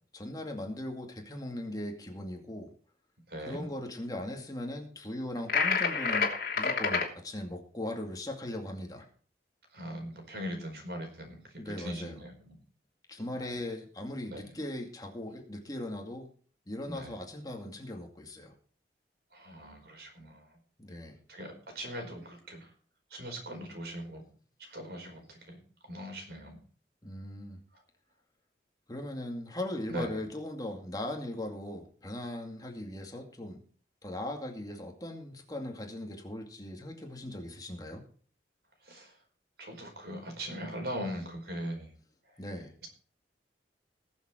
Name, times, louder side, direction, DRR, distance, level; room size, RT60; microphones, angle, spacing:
voice 1, 0.1-2.7 3.4-9.1 11.6-12.2 13.1-16.3 16.7-18.5 20.8-21.2 27.0-27.6 28.9-33.6 34.0-38.0 42.4-42.7, left 1 dB, 20° left, 2 dB, 2.3 m, -39 dB
voice 2, 3.3-3.7 9.7-12.6 13.3-13.6 14.3-14.6 16.9-17.2 19.3-20.5 21.3-22.7 23.1-24.2 24.7-26.6 29.9-30.2 38.8-39.1 39.6-41.9, equal, 65° right, 3 dB, 4.7 m, -40 dB
sound 1, 5.5-7.1, left 5 dB, 55° left, 3.0 m, -28 dB
20.5 x 7.3 x 4.5 m, 0.43 s
head